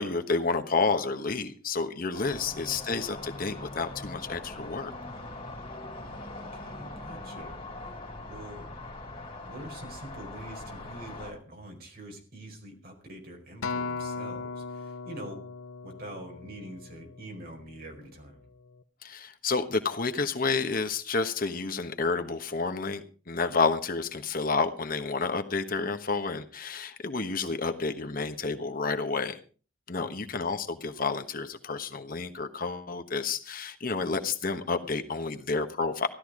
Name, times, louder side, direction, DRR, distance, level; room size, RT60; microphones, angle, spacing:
voice 1, 0.0-4.9 19.0-29.4 29.9-36.1, left 4 dB, 45° left, 7 dB, 1.3 m, -30 dB
sound 1, 2.1-11.3, left 2 dB, 30° left, 4.0 m, -42 dB
voice 2, 5.8-8.7 9.4-15.5 15.8-18.4 29.9-30.3, right 1 dB, 50° right, 2 dB, 4.7 m, -45 dB
Acoustic guitar, 13.6-18.0 18.7-18.8, left 4 dB, 90° left, 0.8 m, -38 dB
16.0 x 12.5 x 4.9 m, 0.38 s
head